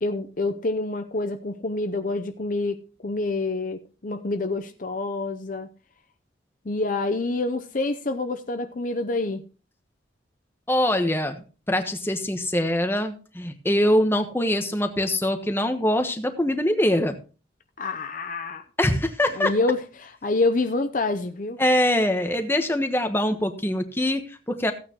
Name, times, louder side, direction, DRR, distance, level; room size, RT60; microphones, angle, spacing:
voice 1, 0.0-5.7 6.6-9.4 17.8-18.6 19.4-21.6, left 2 dB, 45° left, 7 dB, 0.7 m, -27 dB
voice 2, 10.7-17.2 18.8-19.5 21.6-24.7, left 1 dB, 10° left, 6 dB, 1.2 m, -23 dB
15.5 x 8.8 x 3.0 m, 0.34 s
head